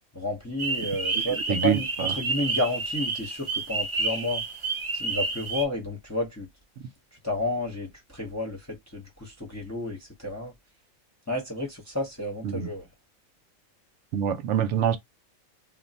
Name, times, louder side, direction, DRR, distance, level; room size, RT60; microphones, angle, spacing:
voice 1, 0.1-4.4 4.9-6.5 7.2-10.5 11.3-12.9, left 1 dB, 15° left, 0.7 m, -31 dB
sound 1, 0.6-5.6, right 3 dB, 30° right, 0.6 m, -30 dB
voice 2, 14.1-15.0, right 9 dB, 70° right, 0.9 m, -25 dB
2.5 x 2.2 x 3.9 m
omnidirectional pair, 1.4 m